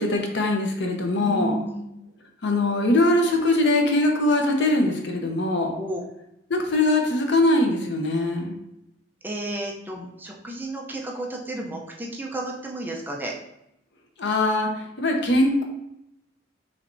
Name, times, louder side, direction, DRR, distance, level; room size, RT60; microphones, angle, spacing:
voice 1, 0.0-1.5 2.4-5.8 6.5-8.5 14.2-14.7 15.0-15.6, left 2 dB, 65° left, 3 dB, 0.8 m, -22 dB
voice 2, 1.2-1.9 5.8-6.0 9.2-13.3, right 1 dB, 10° right, -1 dB, 0.6 m, -32 dB
5.8 x 3.3 x 2.7 m, 0.83 s
head